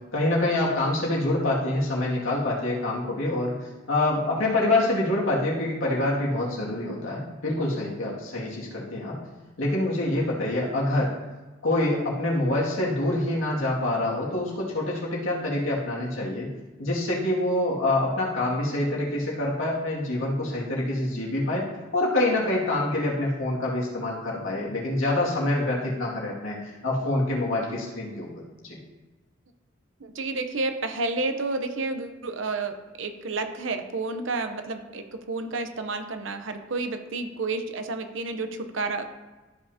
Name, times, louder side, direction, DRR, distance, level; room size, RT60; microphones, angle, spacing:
voice 1, 0.1-9.2 9.6-11.1 11.6-16.5 16.8-21.7 21.9-28.3 28.6-28.8, left 2 dB, 85° left, -4 dB, 2.2 m, -26 dB
voice 2, 30.0-39.0, right 3 dB, 70° right, 7 dB, 0.8 m, -30 dB
13.5 x 5.7 x 2.8 m, 1.2 s
head